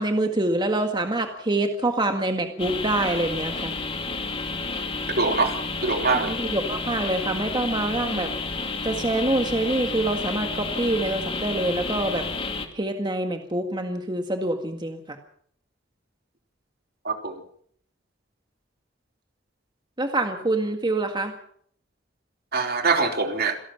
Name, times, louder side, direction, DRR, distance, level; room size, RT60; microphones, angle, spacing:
voice 1, 0.0-3.7 6.1-8.3 8.8-12.3 12.7-15.0 20.0-21.3, right 2 dB, 25° right, 4 dB, 1.8 m, -25 dB
sound 1, 2.6-12.7, left 3 dB, 30° left, 2.6 m, -31 dB
voice 2, 5.2-5.6 5.8-6.3 17.0-17.4 22.5-23.6, right 4 dB, 55° right, 5 dB, 3.2 m, -23 dB
27.0 x 18.0 x 5.9 m, 0.63 s
head